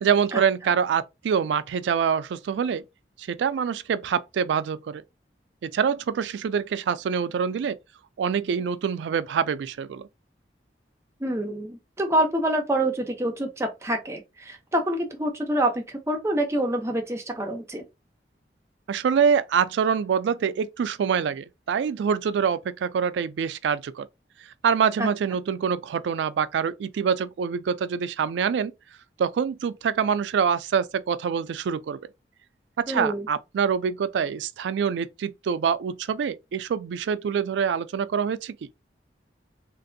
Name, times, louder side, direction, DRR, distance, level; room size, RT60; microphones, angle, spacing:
voice 1, 0.0-2.8 3.2-5.0 5.6-7.8 8.2-10.1 18.9-24.1 24.6-28.7 29.2-32.0 32.8-38.6, right 7 dB, 90° right, 0.3 m, -25 dB
voice 2, 11.2-17.8 25.0-25.1 32.9-33.3, right 1 dB, 15° right, 0.6 m, -26 dB
3.3 x 2.6 x 2.6 m
head